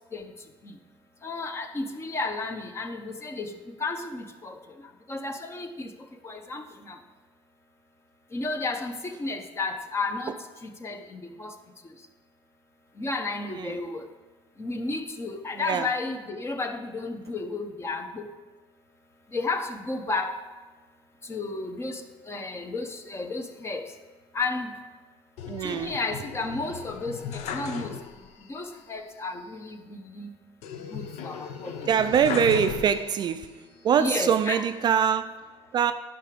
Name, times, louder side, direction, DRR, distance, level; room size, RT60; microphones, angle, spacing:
voice 1, 1.2-3.5 3.8-4.6 5.1-5.9 6.2-7.0 8.3-10.3 10.6-11.5 13.0-14.0 14.6-18.3 19.3-20.3 21.3-22.0 22.3-23.8 24.3-24.7 25.6-28.0 28.5-30.3 30.9-31.7 34.0-34.6, left 3 dB, 25° left, 0.8 m, -32 dB
voice 2, 15.6-15.9 25.5-26.0 31.9-35.9, right 8 dB, 40° right, 0.4 m, -24 dB
sound 1, 25.4-28.4 28.7-28.8 30.6-33.4 33.9-34.7, left 7 dB, 75° left, 0.7 m, -37 dB
10.0 x 5.9 x 5.0 m
cardioid pair, 110°, 11 cm